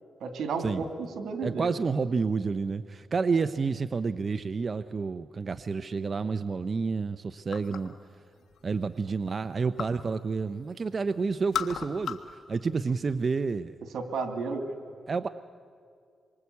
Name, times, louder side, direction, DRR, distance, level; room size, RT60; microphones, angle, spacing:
voice 1, 0.2-0.9 1.2-1.7 13.9-14.8, right 4 dB, 85° right, 6 dB, 2.7 m, -32 dB
voice 2, 1.4-7.9 8.6-13.8 15.1-15.3, right 4 dB, 45° right, 11 dB, 0.6 m, -29 dB
sound 1, 7.5-8.0 8.4-10.1 10.4-11.0 11.3-12.4 12.7-13.5, left 8 dB, 85° left, 1.5 m, -37 dB
27.0 x 23.5 x 8.4 m, 2.2 s
cardioid pair, 85°, 0 cm